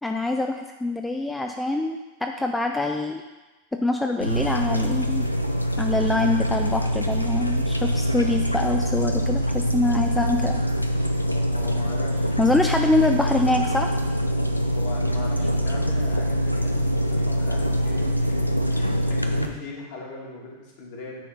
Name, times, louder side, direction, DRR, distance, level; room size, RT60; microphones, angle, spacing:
voice 1, 0.0-3.2 3.8-5.3 5.8-10.6 12.4-13.9, left 2 dB, 5° left, 4 dB, 0.4 m, -24 dB
sound 1, 4.2-19.5, equal, 90° left, 0.5 m, -24 dB
voice 2, 11.5-12.3 14.7-18.3 18.7-21.2, left 2 dB, 50° left, -3 dB, 2.3 m, -39 dB
9.1 x 4.3 x 5.4 m, 1.2 s
figure-of-eight pair, 90°, 0 cm